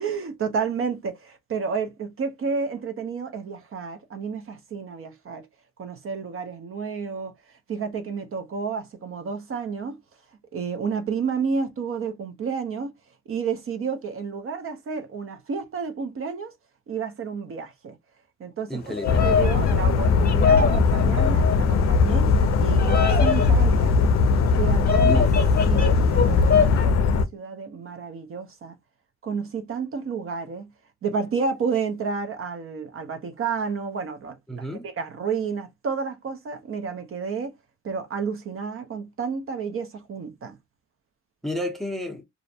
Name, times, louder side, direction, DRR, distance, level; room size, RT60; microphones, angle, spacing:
voice 1, 0.0-5.5 5.8-7.3 7.7-10.0 10.5-12.9 13.3-16.5 16.9-18.0 18.4-18.8 19.2-24.0 24.6-25.3 25.7-28.8 29.2-30.7 31.0-37.6 37.8-40.6, right 5 dB, 45° right, 0.6 m, -30 dB
voice 2, 18.7-19.4 25.1-25.3 34.5-34.8 41.4-42.2, equal, ahead, 0.6 m, -31 dB
Bird vocalization bird call bird song, 18.8-26.9, left 6 dB, 30° left, 0.8 m, -26 dB
sound 1, 19.1-27.2, left 4 dB, 55° left, 0.5 m, -20 dB
2.5 x 2.0 x 2.6 m
cardioid pair, 90°, 30 cm